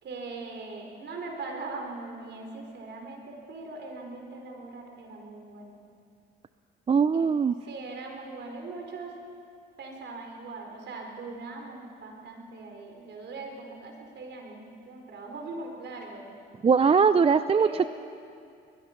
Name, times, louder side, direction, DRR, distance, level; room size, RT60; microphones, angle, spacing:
voice 1, 0.0-5.8 7.1-7.3 7.7-9.1 9.8-16.3 17.6-17.9, right 3 dB, 65° right, 2 dB, 4.4 m, -40 dB
voice 2, 6.9-7.6 16.6-17.9, right 6 dB, 30° right, 13 dB, 0.5 m, -21 dB
22.0 x 21.0 x 5.9 m, 2.4 s
cardioid pair, 90°, 20 cm